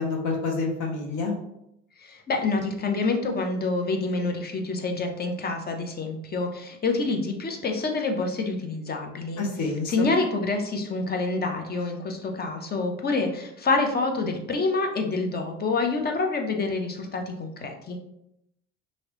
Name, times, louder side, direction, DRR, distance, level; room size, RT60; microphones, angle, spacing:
voice 1, 0.0-1.4 9.4-10.1, left 3 dB, 60° left, 1 dB, 0.9 m, -28 dB
voice 2, 2.0-18.0, left 3 dB, 30° left, 4 dB, 0.7 m, -27 dB
2.9 x 2.9 x 3.0 m, 0.80 s
supercardioid pair, 80°, 34 cm